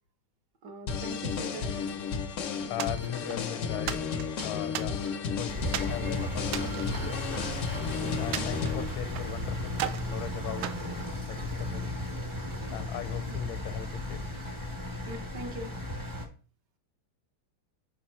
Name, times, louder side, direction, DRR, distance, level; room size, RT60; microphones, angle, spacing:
voice 1, 0.6-1.7 8.0-8.2 13.3-13.4 15.1-15.7, right 2 dB, 60° right, 5 dB, 1.5 m, -41 dB
sound 1, 0.9-8.8, left 6 dB, 65° left, 0.7 m, -33 dB
voice 2, 2.7-4.0 4.4-7.2 8.2-10.7 11.3-11.9 12.7-14.2, left 9 dB, 80° left, 11 dB, 1.5 m, -38 dB
sound 2, 2.8-3.4 3.9-5.3 5.7-6.0 6.4-7.8 8.3-9.3 9.7-10.1 10.6-11.7, right 10 dB, 85° right, 1.4 m, -37 dB
Engine, 5.5-16.3, left 1 dB, 20° right, 0.6 m, -35 dB
5.3 x 5.0 x 4.4 m, 0.37 s
omnidirectional pair, 2.2 m